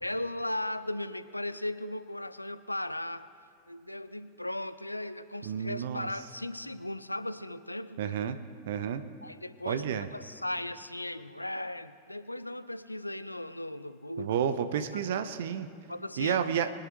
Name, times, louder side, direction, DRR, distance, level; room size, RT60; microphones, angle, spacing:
voice 1, 0.0-3.3 3.7-8.0 9.2-9.8 10.1-14.3 15.9-16.4, left 1 dB, 85° left, 14 dB, 0.4 m, -37 dB
voice 2, 5.4-6.1 8.0-8.4 8.7-9.0 9.7-10.1 14.2-15.7 16.2-16.7, right 8 dB, 55° right, 10 dB, 0.7 m, -30 dB
21.5 x 10.0 x 3.1 m, 2.4 s
figure-of-eight pair, 90°, 0 cm